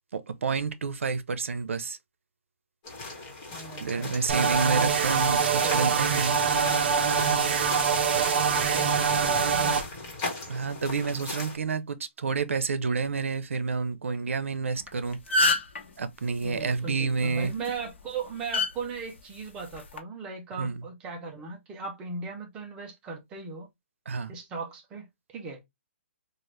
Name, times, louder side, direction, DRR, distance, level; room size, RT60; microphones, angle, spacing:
voice 1, 0.1-2.0 3.7-6.4 10.5-15.2 16.0-17.5 20.6-20.8 24.1-24.3, right 4 dB, 90° right, 0.6 m, -29 dB
sound 1, 2.8-11.6, left 2 dB, 25° left, 1.3 m, -39 dB
voice 2, 3.4-4.8 5.6-5.9 7.9-9.8 16.4-23.7 24.3-25.6, right 4 dB, 15° right, 0.5 m, -38 dB
sound 2, 4.3-9.8, right 6 dB, 55° right, 0.7 m, -24 dB
sound 3, 14.8-14.9 15.1-15.8 17.4-17.7 18.5-18.7 19.7-20.0, left 2 dB, 65° left, 1.1 m, -23 dB
3.1 x 2.5 x 3.0 m
hypercardioid pair, 165°, 7 cm